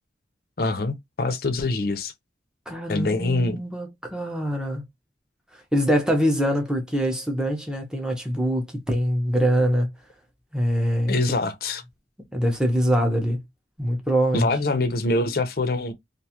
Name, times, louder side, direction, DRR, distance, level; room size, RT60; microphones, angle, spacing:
voice 1, 0.6-2.1 2.9-3.6 11.1-11.8 14.3-15.9, left 2 dB, 55° left, 0.5 m, -24 dB
voice 2, 2.7-4.8 5.7-9.9 10.5-11.2 12.3-13.4 13.8-14.5, equal, 5° right, 0.6 m, -23 dB
2.5 x 2.3 x 2.7 m
head